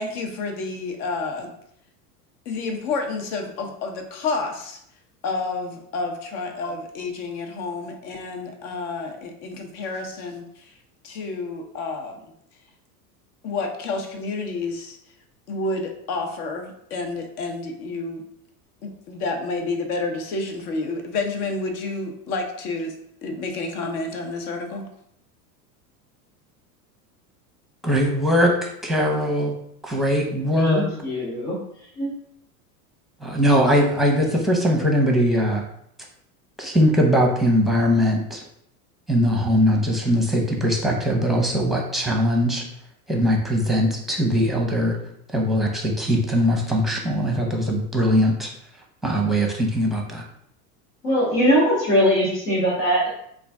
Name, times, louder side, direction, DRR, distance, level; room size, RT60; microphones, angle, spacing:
voice 1, 0.0-1.5 2.5-4.8 5.2-10.7 11.0-12.2 13.4-15.0 15.5-18.2 18.8-22.9 23.2-24.9, left 3 dB, 70° left, 4 dB, 0.9 m, -29 dB
voice 2, 27.8-29.6 29.8-30.9 33.2-35.6 36.6-38.4 39.1-42.6 43.1-45.0 45.3-48.5 49.0-50.2, equal, ahead, 0 dB, 0.6 m, -21 dB
voice 3, 30.6-31.6 32.0-32.1 51.0-53.1, equal, 90° left, -8 dB, 1.4 m, -21 dB
3.1 x 2.5 x 3.5 m, 0.71 s
hypercardioid pair, 95°, 46 cm